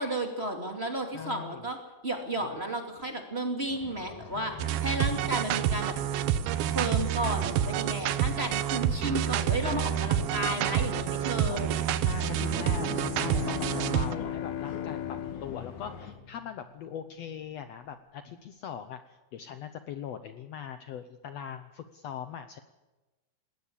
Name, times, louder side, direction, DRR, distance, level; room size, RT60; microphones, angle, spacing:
voice 1, 0.0-1.8 2.0-6.0 6.7-11.7, right 1 dB, 20° right, 4 dB, 2.3 m, -33 dB
voice 2, 1.1-1.7 2.4-2.5 4.2-4.8 9.6-10.2 12.0-22.6, left 8 dB, 85° left, 10 dB, 1.4 m, -41 dB
sound 1, 3.7-16.1, left 6 dB, 55° left, 3.1 m, -45 dB
sound 2, 4.6-14.2, right 10 dB, 80° right, 2.7 m, -28 dB
Bowed string instrument, 12.1-16.9, left 10 dB, 70° left, 2.0 m, -38 dB
20.5 x 18.0 x 8.6 m, 1.2 s
omnidirectional pair, 4.3 m